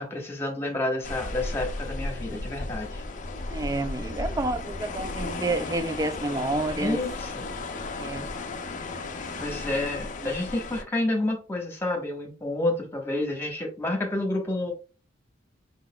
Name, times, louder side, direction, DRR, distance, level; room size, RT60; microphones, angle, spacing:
voice 1, 0.0-3.0 6.8-7.4 9.4-14.7, left 2 dB, 10° left, 1.2 m, -29 dB
sound 1, 1.0-10.8, left 3 dB, 40° left, 0.5 m, -34 dB
voice 2, 3.5-7.0 8.0-8.3 10.2-10.3, right 2 dB, 15° right, 0.3 m, -29 dB
4.5 x 4.0 x 2.3 m
head